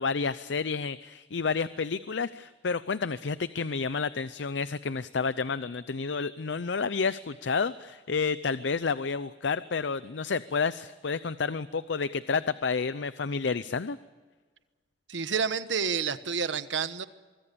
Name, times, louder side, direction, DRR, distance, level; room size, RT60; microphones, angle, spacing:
voice 1, 0.0-14.0, left 5 dB, 70° left, 15 dB, 0.6 m, -30 dB
voice 2, 15.1-17.1, right 6 dB, 85° right, 12 dB, 1.2 m, -29 dB
24.5 x 22.5 x 7.0 m, 1.4 s
head